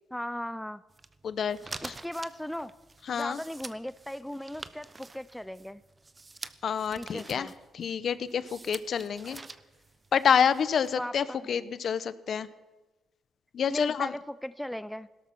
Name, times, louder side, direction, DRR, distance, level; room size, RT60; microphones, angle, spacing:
voice 1, 0.1-0.8 1.8-2.7 3.1-5.8 6.9-7.5 10.9-11.5 13.7-15.1, left 1 dB, 5° left, 15 dB, 0.4 m, -37 dB
sound 1, 0.9-10.9, right 3 dB, 25° right, 0.8 m, -47 dB
voice 2, 1.2-1.6 1.8-1.9 3.1-3.4 6.6-7.5 7.7-9.4 10.1-12.5 13.5-14.1, left 7 dB, 55° left, 15 dB, 0.8 m, -28 dB
17.0 x 12.5 x 5.9 m, 1.2 s
cardioid pair, 90°, 0 cm